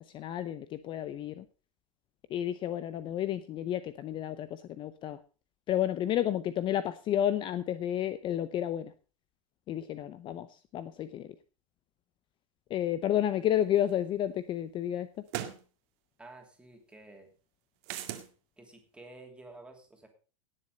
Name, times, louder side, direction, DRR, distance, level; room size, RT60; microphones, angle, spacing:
voice 1, 0.1-1.4 2.3-5.2 5.7-8.9 9.7-11.3 12.7-15.1, left 11 dB, 30° left, 14 dB, 0.7 m, -31 dB
sound 1, 13.9-14.0 15.3-15.6 17.8-18.3, right 13 dB, 55° right, 2.0 m, -37 dB
voice 2, 16.2-17.3 18.6-20.1, right 2 dB, 5° right, 3 dB, 3.1 m, -51 dB
17.5 x 7.5 x 5.3 m, 0.36 s
supercardioid pair, 140°, 17 cm